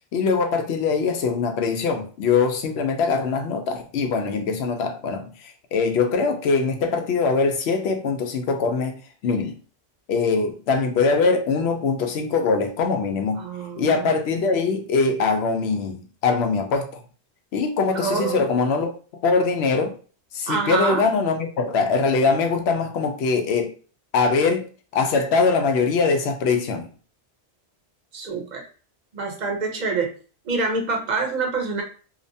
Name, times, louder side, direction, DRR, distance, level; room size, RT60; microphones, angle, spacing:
voice 1, 0.1-9.0 9.2-9.6 10.1-13.4 13.8-17.0 17.5-18.9 19.2-20.0 20.3-23.7 24.1-24.7 24.9-26.9, left 4 dB, 75° left, 0.8 m, -22 dB
voice 2, 13.4-14.1 14.4-14.5 17.9-18.5 20.5-21.0 28.1-28.6 29.1-30.1 30.5-31.8, right 4 dB, 50° right, 0.7 m, -26 dB
2.8 x 2.1 x 2.6 m
omnidirectional pair, 1.1 m